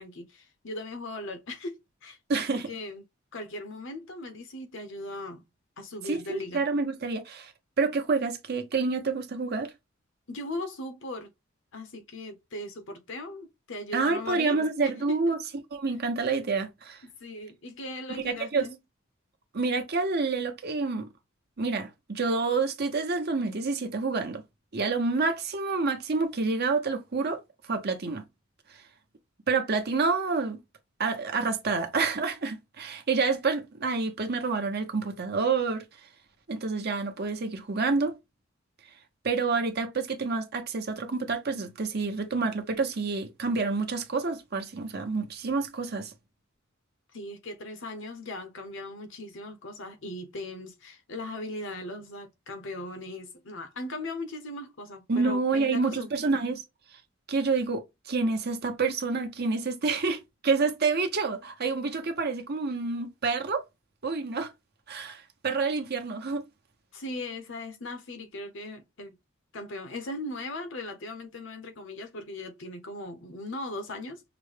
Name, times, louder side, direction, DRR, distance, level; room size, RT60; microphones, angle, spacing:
voice 1, 0.0-3.0 3.3-5.4 5.8-6.6 10.3-11.3 11.7-15.3 17.0-18.8 47.1-56.1 66.9-69.2 69.5-74.2, left 2 dB, 65° left, 0.9 m, -38 dB
voice 2, 2.3-2.7 6.0-7.5 7.8-9.7 13.9-15.4 15.7-17.0 18.2-18.7 19.5-21.1 21.6-24.4 24.7-27.4 27.7-28.2 29.5-30.6 31.0-35.8 36.5-38.1 39.2-46.1 55.1-56.6 57.3-63.6 64.0-64.5 64.9-66.4, right 4 dB, 50° right, 0.9 m, -28 dB
5.9 x 2.2 x 3.3 m
head